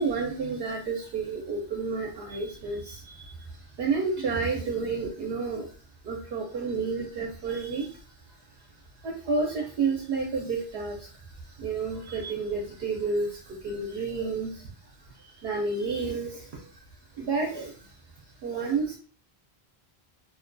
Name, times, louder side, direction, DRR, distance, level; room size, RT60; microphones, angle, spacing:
voice 1, 0.0-5.7 6.0-8.0 9.0-11.1 11.4-16.7 17.2-17.9 18.4-19.0, right 4 dB, 70° right, -1 dB, 0.8 m, -31 dB
2.6 x 2.1 x 2.5 m, 0.39 s
omnidirectional pair, 1.1 m